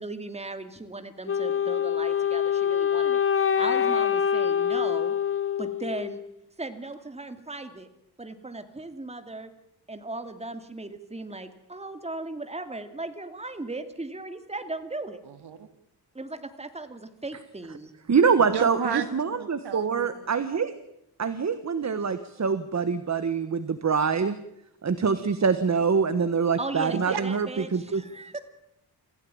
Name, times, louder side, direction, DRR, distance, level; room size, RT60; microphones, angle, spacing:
voice 1, 0.0-5.1 5.6-6.2 6.6-7.9 8.2-9.5 9.9-15.2 16.1-17.9 26.6-28.4, right 2 dB, 15° right, 8 dB, 2.4 m, -37 dB
Wind instrument woodwind instrument, 1.3-6.3, left 8 dB, 35° left, 0.8 m, -25 dB
voice 2, 15.2-15.7 18.5-20.3 26.9-27.2, right 8 dB, 80° right, 10 dB, 2.3 m, -33 dB
voice 3, 18.1-20.7 21.2-24.4 24.8-28.0, right 5 dB, 45° right, 12 dB, 1.4 m, -25 dB
26.5 x 16.0 x 8.9 m, 0.81 s
wide cardioid pair, 130°, 39 cm